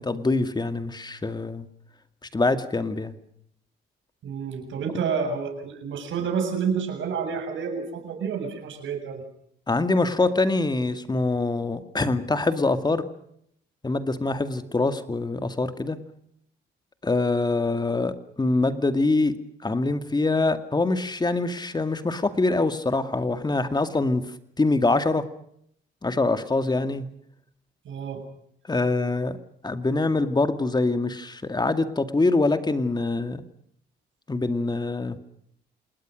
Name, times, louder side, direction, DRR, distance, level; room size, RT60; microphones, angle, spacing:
voice 1, 0.0-1.7 2.3-3.1 9.7-13.0 13.8-16.0 17.0-19.4 19.6-24.3 24.6-25.2 26.0-27.1 28.7-29.4 29.6-33.4 34.3-35.2, left 3 dB, 20° left, 10 dB, 2.2 m, -24 dB
voice 2, 4.2-9.2 27.9-28.2, right 6 dB, 75° right, 5 dB, 7.3 m, -29 dB
28.0 x 20.0 x 6.5 m, 0.71 s
cardioid pair, 90°, 20 cm